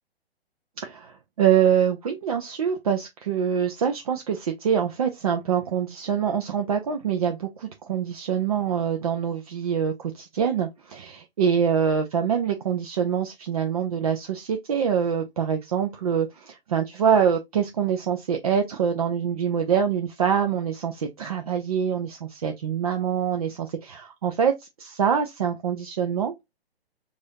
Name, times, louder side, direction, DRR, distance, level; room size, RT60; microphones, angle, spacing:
voice 1, 0.8-26.3, right 7 dB, 35° right, 0.5 m, -25 dB
4.8 x 2.5 x 2.5 m
figure-of-eight pair, 125°, 31 cm